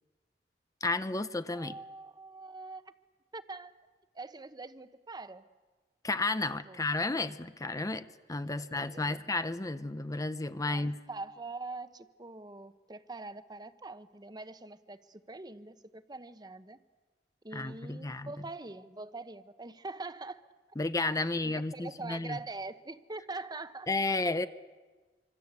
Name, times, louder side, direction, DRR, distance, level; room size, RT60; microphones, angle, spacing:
voice 1, 0.8-1.8 6.0-11.0 17.5-18.3 20.8-22.4 23.9-24.5, left 2 dB, 20° left, 12 dB, 0.8 m, -32 dB
voice 2, 1.5-2.8 3.3-3.7 4.1-5.4 6.7-6.8 8.4-9.2 10.6-16.8 17.4-20.4 21.2-23.9, right 3 dB, 25° right, 12 dB, 1.1 m, -44 dB
26.0 x 25.5 x 8.3 m, 1.3 s
head